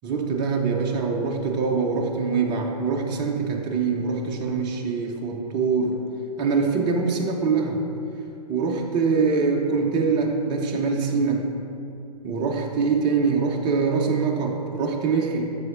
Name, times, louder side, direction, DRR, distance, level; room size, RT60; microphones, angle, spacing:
voice 1, 0.0-6.0 6.4-7.9 8.5-11.6 12.2-15.6, right 4 dB, 20° right, 0 dB, 0.6 m, -24 dB
10.5 x 7.1 x 2.6 m, 2.7 s
figure-of-eight pair, 115°, 21 cm